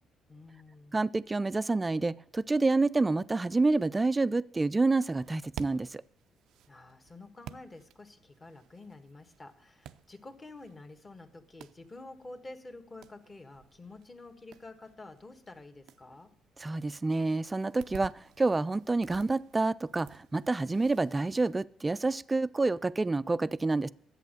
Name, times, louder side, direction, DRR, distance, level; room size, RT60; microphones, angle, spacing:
voice 1, 0.3-1.0 6.7-16.3, left 2 dB, 25° left, 7 dB, 1.4 m, -49 dB
voice 2, 0.9-6.0 16.6-23.9, right 3 dB, 20° right, 17 dB, 0.3 m, -28 dB
sound 1, 5.1-21.5, right 11 dB, 85° right, 0.4 m, -53 dB
10.5 x 8.3 x 6.5 m, 0.69 s
cardioid pair, 90°, 0 cm